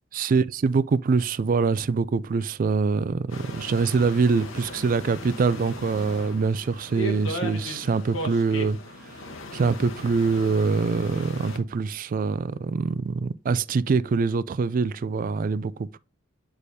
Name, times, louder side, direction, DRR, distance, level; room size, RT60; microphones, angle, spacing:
voice 1, 0.2-8.8 9.5-16.0, right 4 dB, 45° right, 0.3 m, -24 dB
sound 1, 3.3-11.6, left 1 dB, 85° left, 1.2 m, -37 dB
8.4 x 4.8 x 2.7 m
head